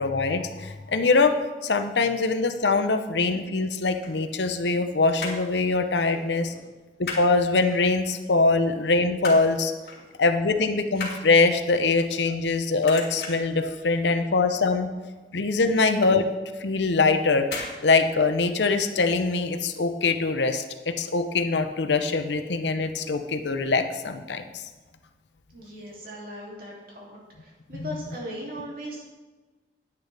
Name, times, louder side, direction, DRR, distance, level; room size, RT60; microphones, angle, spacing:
voice 1, 0.0-1.3 1.6-6.5 7.0-9.7 10.2-14.9 15.3-16.3 16.6-17.5 17.8-24.6 27.7-27.9, left 3 dB, 85° left, 8 dB, 0.8 m, -23 dB
sound 1, 4.0-4.8 5.1-5.5 5.9-6.1 6.4-7.3 7.7-8.3 8.7-9.5 9.9-10.1 10.4-12.5 12.8-13.6 14.0-14.3 14.6-14.7 15.0-15.1 15.6-15.7 16.5-16.8 17.4-17.8 18.0-18.1, left 3 dB, 65° left, 2.3 m, -36 dB
voice 2, 6.0-6.6 9.9-10.2 25.5-29.1, equal, 55° right, -3 dB, 2.7 m, -39 dB
10.5 x 10.0 x 3.4 m, 1.3 s
head